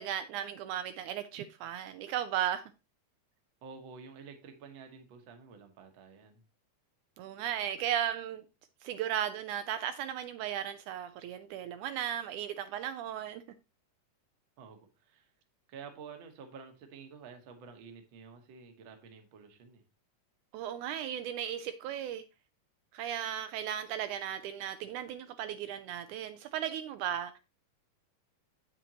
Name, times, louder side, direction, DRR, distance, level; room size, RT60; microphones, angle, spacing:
voice 1, 0.0-2.6 7.2-8.4 8.8-13.4 20.5-22.2 22.9-27.4, right 10 dB, 80° right, 1.9 m, -36 dB
voice 2, 3.6-6.4 14.6-15.3 15.7-19.8, right 5 dB, 55° right, 1.5 m, -50 dB
7.9 x 7.6 x 2.9 m
omnidirectional pair, 3.7 m